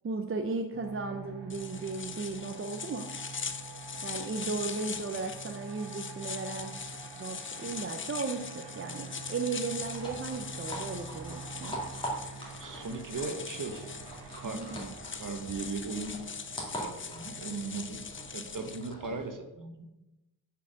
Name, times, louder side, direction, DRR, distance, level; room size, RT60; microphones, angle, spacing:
voice 1, 0.0-3.1 4.0-6.8 7.2-11.8 14.4-14.9, right 4 dB, 30° right, 6 dB, 0.5 m, -36 dB
sound 1, 0.7-19.3, right 4 dB, 90° right, 1.3 m, -47 dB
sound 2, 1.5-18.9, left 6 dB, 30° left, 0.5 m, -42 dB
sound 3, 9.8-19.3, equal, 10° left, 2.2 m, -43 dB
voice 2, 12.6-13.9 14.4-14.6 15.1-16.2 16.5-18.0 18.3-19.9, right 4 dB, 50° right, 6 dB, 1.0 m, -38 dB
7.0 x 4.7 x 6.3 m, 0.97 s
wide cardioid pair, 130°, 41 cm